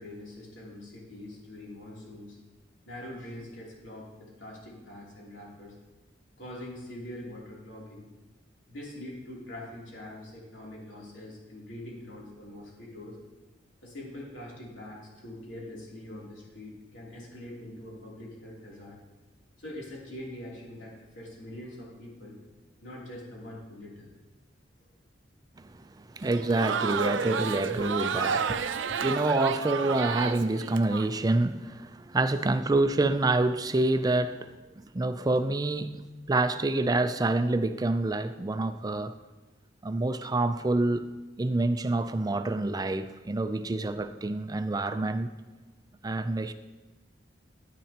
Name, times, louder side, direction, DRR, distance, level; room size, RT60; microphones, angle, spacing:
voice 1, 0.0-2.4 2.8-5.7 6.4-8.1 8.7-13.2 13.8-19.0 19.6-22.4 22.8-24.5, left 1 dB, 90° left, 3.1 m, -43 dB
voice 2, 25.6-34.5 34.9-36.0 36.3-39.1 39.8-41.1 41.4-45.3 46.0-46.5, right 2 dB, 20° right, 0.4 m, -27 dB
Crowd, 26.2-31.1, right 6 dB, 90° right, 0.5 m, -31 dB
10.5 x 10.5 x 2.9 m
head